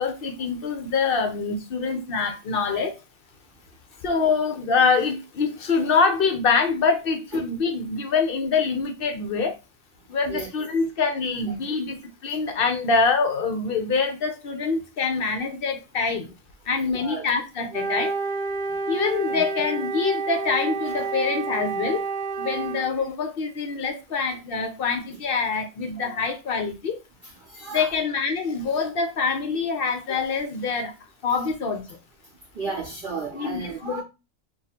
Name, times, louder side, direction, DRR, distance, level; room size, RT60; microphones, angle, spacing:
voice 1, 0.0-3.0 4.0-9.6 10.1-16.3 16.7-18.2 18.9-22.1 22.4-27.0 27.7-30.9 31.2-31.8 33.3-34.0, left 4 dB, 60° left, 0.6 m, -25 dB
voice 2, 16.9-17.3 19.3-19.4 26.0-26.3 27.2-27.9 32.6-34.0, right 4 dB, 45° right, 0.8 m, -34 dB
Wind instrument woodwind instrument, 17.7-22.9, right 4 dB, 75° right, 0.4 m, -29 dB
2.6 x 2.4 x 4.1 m
omnidirectional pair, 1.4 m